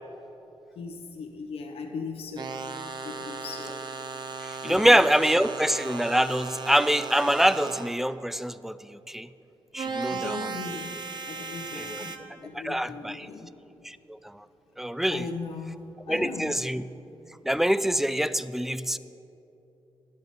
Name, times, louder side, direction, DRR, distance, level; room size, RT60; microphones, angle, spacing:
voice 1, 0.8-2.6 3.0-3.8 4.6-5.3 10.1-10.9 11.3-13.5 15.1-16.7, left 4 dB, 75° left, 3 dB, 0.8 m, -38 dB
sound 1, 2.4-8.0 9.8-12.2, right 4 dB, 45° right, 0.8 m, -36 dB
voice 2, 4.4-9.3 9.7-10.5 11.8-12.0 12.6-13.3 13.8-14.2 14.8-15.2 16.1-16.8 17.4-19.0, equal, 5° right, 15 dB, 0.3 m, -25 dB
10.5 x 7.8 x 5.2 m, 2.9 s
cardioid pair, 60°, 10 cm